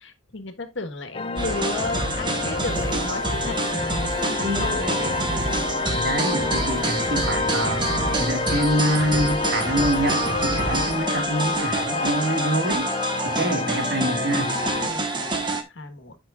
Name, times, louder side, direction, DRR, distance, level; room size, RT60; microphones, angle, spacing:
voice 1, 0.0-5.6 13.2-13.5 14.8-16.2, left 3 dB, 70° left, 1.5 m, -34 dB
sound 1, 1.1-14.9, left 4 dB, 30° left, 0.5 m, -29 dB
sound 2, 1.4-15.6, right 2 dB, 25° right, 1.4 m, -27 dB
sound 3, 2.5-4.4 4.7-6.6 6.9-8.8 9.1-11.0 11.4-13.2, left 1 dB, 55° left, 1.4 m, -36 dB
voice 2, 4.4-5.0 5.9-7.9 8.2-12.9 13.2-14.5, right 1 dB, 55° right, 2.1 m, -26 dB
11.0 x 6.0 x 2.5 m
head